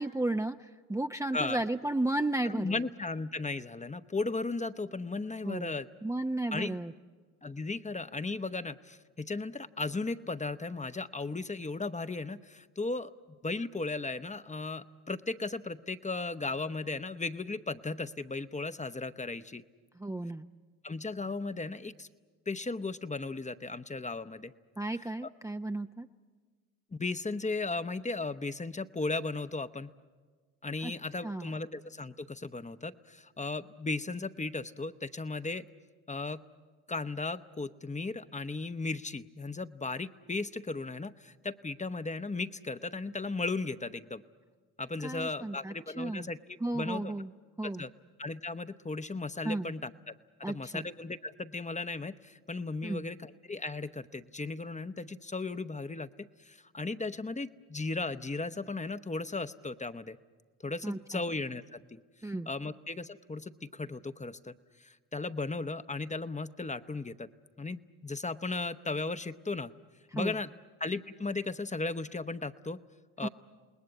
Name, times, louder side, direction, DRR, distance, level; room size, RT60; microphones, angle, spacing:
voice 1, 0.0-2.7 5.4-5.7 6.0-6.9 20.0-20.5 24.8-26.1 30.8-30.9 31.2-31.5 45.0-46.3 46.6-47.3 47.6-47.9 49.4-49.7 50.4-50.9 52.8-53.1 60.8-61.2 62.2-62.5 70.1-70.4 73.2-73.3, right 2 dB, 10° right, 6 dB, 0.7 m, -34 dB
voice 2, 2.4-5.9 6.5-6.8 7.4-13.1 13.4-19.6 20.8-22.1 22.5-24.5 26.9-29.9 30.6-35.7 36.1-36.4 36.9-44.2 44.8-47.1 47.6-47.9 48.2-50.1 50.4-60.2 60.6-62.0 62.5-64.5 64.8-67.3 67.6-69.7 70.1-70.5 70.8-72.8 73.2-73.3, left 3 dB, 15° left, 11 dB, 0.9 m, -36 dB
29.0 x 20.0 x 8.4 m, 1.5 s
hypercardioid pair, 50°, 41 cm